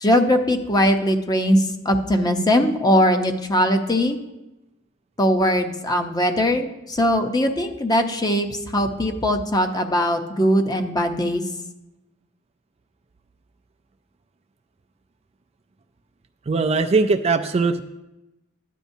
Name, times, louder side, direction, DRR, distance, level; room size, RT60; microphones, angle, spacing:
voice 1, 0.0-4.2 5.2-11.4, equal, 20° left, 5 dB, 0.8 m, -20 dB
voice 2, 16.5-17.8, right 4 dB, 30° right, 7 dB, 0.4 m, -20 dB
13.5 x 10.0 x 2.7 m, 0.98 s
head